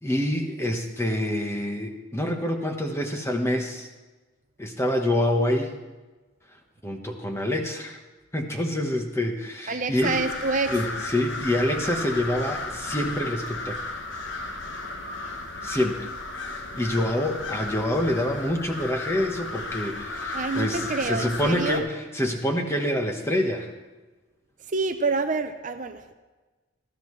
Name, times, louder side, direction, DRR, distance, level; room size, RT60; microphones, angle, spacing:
voice 1, 0.0-3.9 4.6-5.7 6.8-8.0 8.3-10.1 10.7-13.8 15.6-16.1 16.5-23.7, left 1 dB, 15° left, 3 dB, 1.2 m, -26 dB
voice 2, 9.7-10.8 20.3-21.9 24.7-26.1, right 3 dB, 40° right, 8 dB, 0.6 m, -27 dB
sound 1, 10.0-21.8, left 2 dB, 60° left, 1.1 m, -34 dB
18.5 x 14.0 x 3.2 m, 1.2 s
head